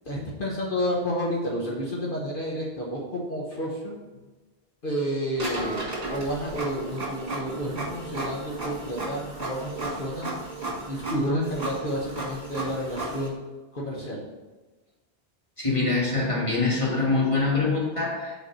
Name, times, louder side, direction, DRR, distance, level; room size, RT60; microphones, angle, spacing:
voice 1, 0.0-3.9 4.8-10.3 10.9-14.2, equal, 60° left, -3 dB, 1.2 m, -30 dB
Printer, 5.3-13.3, right 2 dB, 60° right, 2.1 m, -34 dB
voice 2, 15.6-18.3, left 3 dB, 30° left, -5 dB, 2.0 m, -24 dB
5.1 x 4.7 x 6.0 m, 1.2 s
omnidirectional pair, 1.0 m